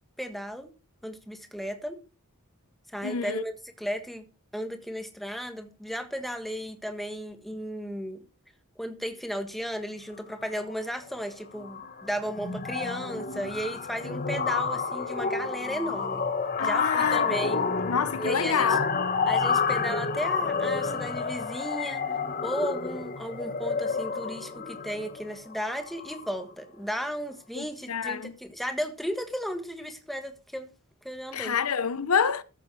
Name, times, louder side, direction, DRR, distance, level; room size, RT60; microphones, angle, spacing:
voice 1, 0.2-0.7 1.0-2.0 2.9-4.3 4.5-8.2 8.8-16.2 16.6-17.7 18.2-18.8 19.3-22.0 22.4-30.7 31.0-31.6, equal, ahead, 1.5 m, -34 dB
voice 2, 3.0-3.4 16.6-18.9 27.6-28.4 31.3-32.4, left 6 dB, 80° left, 0.8 m, -28 dB
sound 1, 10.4-10.7 11.0-11.3 11.6-26.4, left 5 dB, 40° left, 1.1 m, -30 dB
14.0 x 7.7 x 4.7 m
head